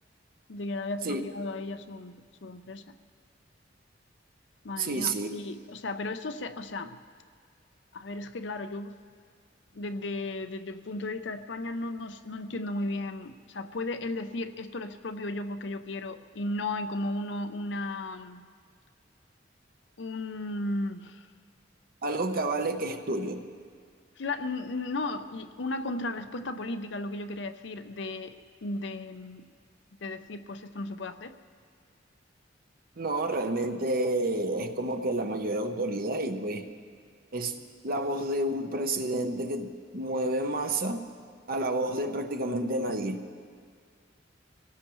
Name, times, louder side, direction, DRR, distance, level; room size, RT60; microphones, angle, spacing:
voice 1, 0.5-3.0 4.6-7.0 7.9-9.0 9.7-18.4 20.0-21.3 24.2-29.5 30.0-31.3, left 2 dB, 70° left, 9 dB, 0.6 m, -35 dB
voice 2, 4.8-5.3 22.0-23.5 33.0-36.7 37.3-37.5 37.8-41.0 41.5-43.2, right 2 dB, 50° right, 7 dB, 0.9 m, -30 dB
24.5 x 18.0 x 3.1 m, 2.1 s
head